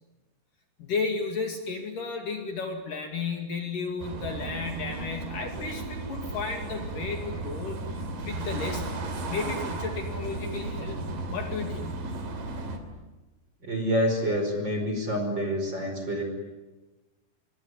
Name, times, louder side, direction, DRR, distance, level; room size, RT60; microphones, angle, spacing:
voice 1, 0.8-7.8 8.2-9.0 9.3-11.0 11.3-11.9, left 4 dB, 55° left, 4 dB, 3.6 m, -33 dB
sound 1, 4.0-12.8, right 2 dB, 55° right, 4.4 m, -35 dB
voice 2, 13.6-16.2, equal, 25° right, 4 dB, 5.4 m, -27 dB
26.5 x 23.0 x 9.7 m, 1.1 s
omnidirectional pair, 4.9 m